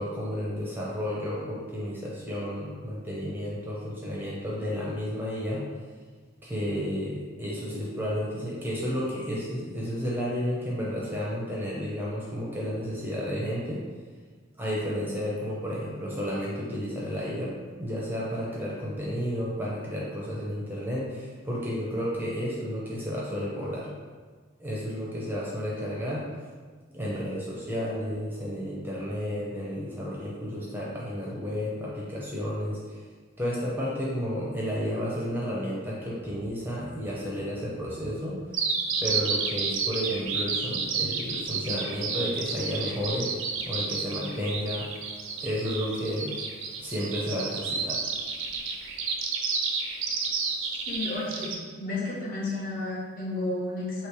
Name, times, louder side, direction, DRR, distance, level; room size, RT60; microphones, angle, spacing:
voice 1, 0.0-5.7 6.4-13.8 14.6-17.5 17.8-23.9 24.6-26.2 26.9-33.0 33.4-38.4 39.0-43.4 43.7-44.9 45.4-46.3 46.8-48.0, equal, 10° right, -6 dB, 0.6 m, -32 dB
Bird vocalization bird call bird song, 38.5-51.6, right 5 dB, 75° right, 0.5 m, -30 dB
voice 2, 50.9-51.5 51.8-54.1, left 2 dB, 45° left, -6 dB, 1.2 m, -32 dB
3.2 x 3.0 x 4.7 m, 1.5 s
head